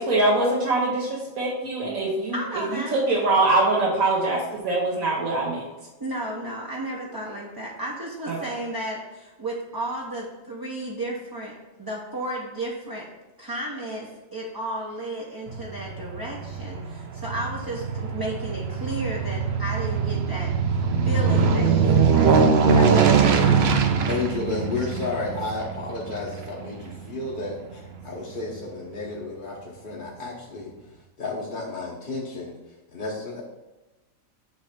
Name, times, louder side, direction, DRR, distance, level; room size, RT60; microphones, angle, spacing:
voice 1, 0.1-5.6 8.3-8.4, right 2 dB, 80° right, -4 dB, 1.5 m, -23 dB
voice 2, 2.3-3.0 6.0-13.1 13.4-20.8 21.0-23.9, right 1 dB, 25° right, -3 dB, 0.6 m, -33 dB
Aircraft, 15.5-28.0 28.4-28.5, right 5 dB, 60° right, 0.8 m, -22 dB
voice 3, 24.1-30.7 31.2-32.6 32.9-33.4, left 3 dB, 45° left, -4 dB, 1.0 m, -32 dB
8.2 x 3.2 x 5.1 m, 1.1 s
omnidirectional pair, 1.4 m